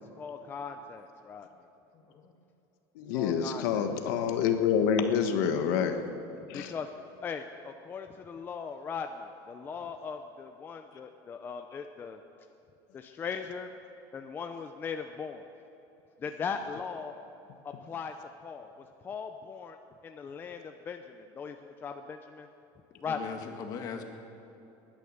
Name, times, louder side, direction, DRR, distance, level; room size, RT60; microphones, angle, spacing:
voice 1, 0.2-1.5 3.1-3.9 6.5-6.9 7.2-12.2 12.9-13.8 14.1-15.5 16.2-17.1 17.6-18.1 18.4-18.7 19.0-19.8 20.0-22.5 23.0-23.4, left 6 dB, 20° left, 6 dB, 0.6 m, -39 dB
voice 2, 2.9-6.0 6.5-6.7, left 7 dB, 75° left, 6 dB, 1.3 m, -27 dB
voice 3, 23.0-24.0, left 6 dB, 40° left, 4 dB, 1.7 m, -40 dB
19.5 x 10.5 x 6.6 m, 3.0 s
cardioid pair, 155°, 10 cm